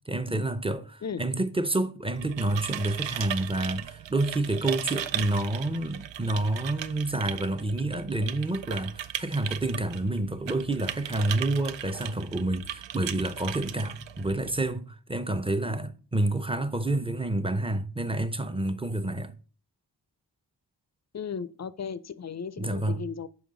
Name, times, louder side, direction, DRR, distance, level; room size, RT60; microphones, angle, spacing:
voice 1, 0.1-19.3 22.6-23.0, right 2 dB, 15° right, 0.5 m, -29 dB
sound 1, 2.0-14.7, right 10 dB, 80° right, 0.5 m, -37 dB
voice 2, 21.1-23.3, left 6 dB, 40° left, 0.5 m, -35 dB
7.0 x 5.4 x 3.6 m
wide cardioid pair, 95°, 44 cm